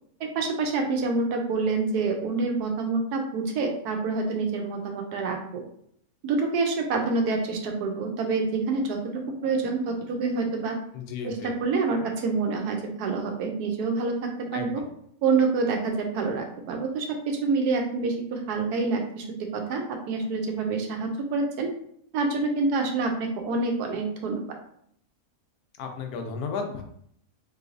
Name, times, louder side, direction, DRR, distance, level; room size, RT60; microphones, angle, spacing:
voice 1, 0.3-5.6 6.2-10.8 11.2-11.3 11.6-14.8 15.2-19.2 19.5-21.7 22.1-24.4, right 4 dB, 90° right, 3 dB, 1.2 m, -27 dB
voice 2, 10.9-11.6 14.5-14.7 25.8-26.8, left 5 dB, 75° left, 4 dB, 1.1 m, -33 dB
3.1 x 3.1 x 2.5 m, 0.68 s
omnidirectional pair, 1.6 m